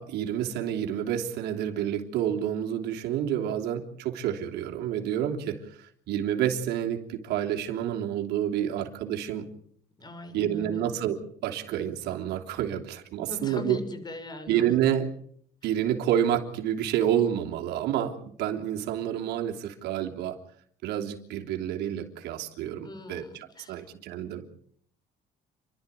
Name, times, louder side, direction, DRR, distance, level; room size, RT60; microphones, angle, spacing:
voice 1, 0.0-9.5 10.3-13.8 14.5-15.1 15.6-20.4 20.8-24.5, right 10 dB, 80° right, 1 dB, 3.3 m, -29 dB
voice 2, 10.0-10.9 13.2-14.7 22.8-23.9, left 2 dB, 25° left, 8 dB, 6.6 m, -40 dB
30.0 x 12.5 x 9.8 m, 0.63 s
cardioid pair, 110°, 17 cm